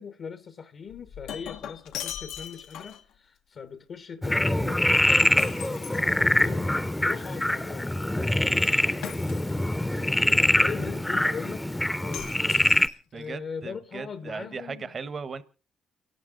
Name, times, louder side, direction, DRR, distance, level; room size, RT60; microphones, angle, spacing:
voice 1, 0.0-8.0 10.3-12.3 12.8-14.8, left 6 dB, 55° left, 1.0 m, -40 dB
Shatter, 0.9-3.1 5.4-6.7 9.0-9.8 12.1-13.2, left 9 dB, 85° left, 1.1 m, -39 dB
Frog, 4.2-12.9, left 1 dB, 10° left, 0.7 m, -24 dB
voice 2, 8.4-9.0 13.1-15.4, right 5 dB, 40° right, 1.1 m, -38 dB
30.0 x 11.5 x 3.8 m
cardioid pair, 90°, 0 cm